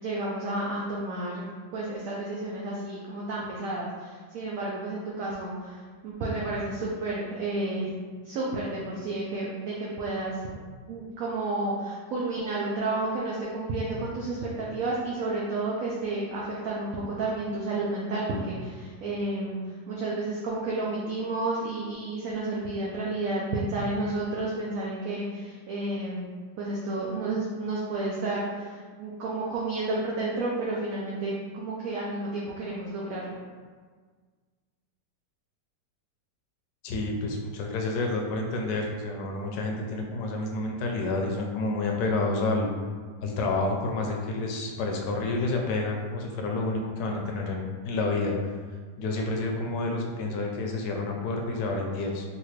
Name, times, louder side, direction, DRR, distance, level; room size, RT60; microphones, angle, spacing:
voice 1, 0.0-1.5 1.7-7.9 8.2-10.4 10.9-19.6 19.9-26.3 26.6-33.4, right 2 dB, 70° right, -5 dB, 0.8 m, -31 dB
voice 2, 36.8-42.7 43.2-48.3 49.0-52.2, left 2 dB, 80° left, 1 dB, 1.2 m, -29 dB
4.0 x 2.5 x 3.1 m, 1.5 s
omnidirectional pair, 1.8 m